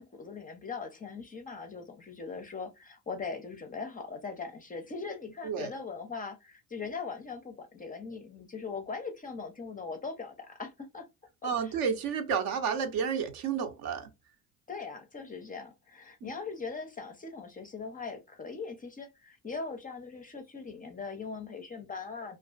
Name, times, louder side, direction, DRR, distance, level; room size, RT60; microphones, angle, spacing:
voice 1, 0.0-11.0 11.4-11.7 14.7-22.4, left 4 dB, 20° left, 0.4 m, -40 dB
voice 2, 11.4-14.1 16.2-16.3, right 6 dB, 55° right, 0.6 m, -31 dB
2.3 x 2.3 x 2.2 m
hypercardioid pair, 60°, 42 cm